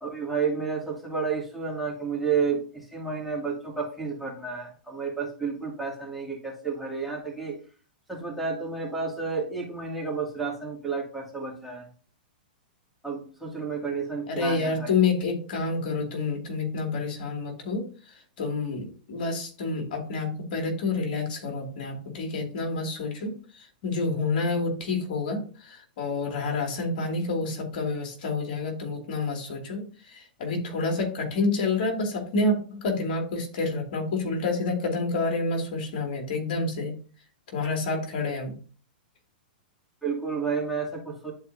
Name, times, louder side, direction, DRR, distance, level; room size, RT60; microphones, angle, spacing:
voice 1, 0.0-7.6 8.1-11.9 13.0-14.9 40.0-41.3, right 5 dB, ahead, -4 dB, 2.4 m, -31 dB
voice 2, 14.3-36.9 37.5-38.5, left 3 dB, 60° left, 2 dB, 2.5 m, -28 dB
11.0 x 4.5 x 2.7 m, 0.40 s
hypercardioid pair, 120°, 5 cm